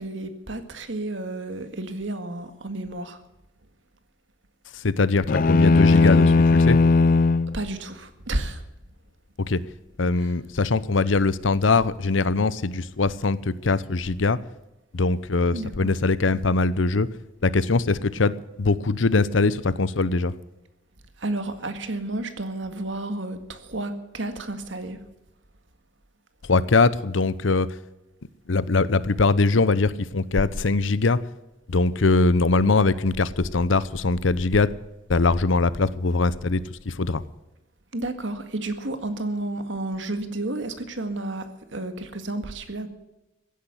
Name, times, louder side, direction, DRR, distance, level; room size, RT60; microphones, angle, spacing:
voice 1, 0.0-3.2 6.0-6.1 7.5-8.6 10.2-10.3 15.5-15.9 21.2-25.0 37.9-42.9, right 2 dB, 75° right, 9 dB, 1.9 m, -31 dB
voice 2, 4.7-6.8 9.4-9.6 10.0-14.4 14.9-17.1 17.4-20.3 26.5-27.7 28.5-31.2 31.7-34.7 35.1-37.2, left 3 dB, 85° left, 17 dB, 0.8 m, -22 dB
sound 1, 5.3-7.5, left 3 dB, 45° left, 0.4 m, -17 dB
16.0 x 10.5 x 8.1 m, 0.96 s
head